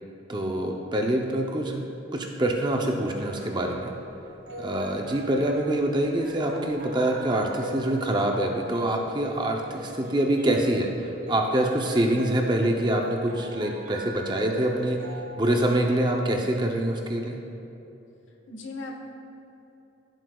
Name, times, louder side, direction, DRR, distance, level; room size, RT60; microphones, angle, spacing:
voice 1, 0.3-1.8 2.1-3.9 4.6-15.0 15.4-17.4, right 1 dB, 25° right, 1 dB, 0.6 m, -25 dB
sound 1, 2.5-16.1, right 1 dB, 80° right, 1.5 m, -41 dB
voice 2, 18.3-19.0, left 2 dB, 85° left, 1 dB, 1.2 m, -38 dB
15.0 x 7.8 x 2.3 m, 3.0 s
head